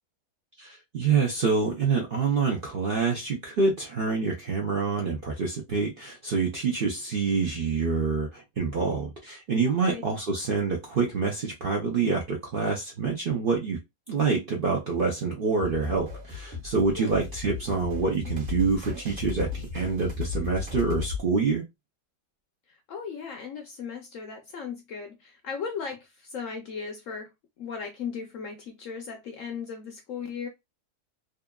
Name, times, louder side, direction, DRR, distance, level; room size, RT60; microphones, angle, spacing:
voice 1, 0.6-13.8 14.1-21.6, right 4 dB, 65° right, 0.5 m, -26 dB
sound 1, 15.6-21.2, left 5 dB, 30° right, 1.0 m, -35 dB
voice 2, 22.7-27.3 27.6-30.5, left 6 dB, 70° left, 0.8 m, -37 dB
2.8 x 2.4 x 2.2 m
omnidirectional pair, 1.7 m